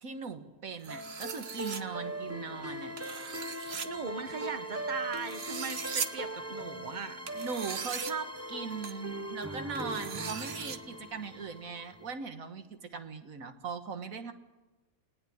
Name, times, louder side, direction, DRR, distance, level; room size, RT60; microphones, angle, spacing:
voice 1, 0.0-3.0 7.3-14.3, right 5 dB, 80° right, 8 dB, 1.9 m, -39 dB
sound 1, 0.8-1.8 3.0-3.9 5.1-6.1 7.3-8.1 8.8-8.9 9.7-10.8, right 6 dB, 50° right, 1.3 m, -39 dB
sound 2, 0.9-12.1, right 1 dB, 15° right, 0.7 m, -40 dB
voice 2, 3.8-7.2, right 5 dB, 35° right, 8 dB, 1.7 m, -39 dB
20.5 x 19.5 x 9.4 m, 1.1 s
omnidirectional pair, 1.4 m